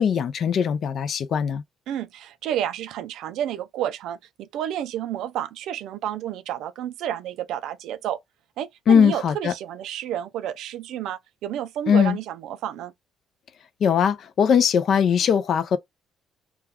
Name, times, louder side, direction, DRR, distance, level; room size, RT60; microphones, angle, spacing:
voice 1, 0.0-1.6 8.9-9.5 11.9-12.2 13.8-15.8, left 7 dB, 50° left, 0.3 m, -20 dB
voice 2, 1.9-8.2 8.6-12.9, right 11 dB, 80° right, 0.4 m, -30 dB
2.3 x 2.2 x 3.4 m
cardioid pair, 125°, 0 cm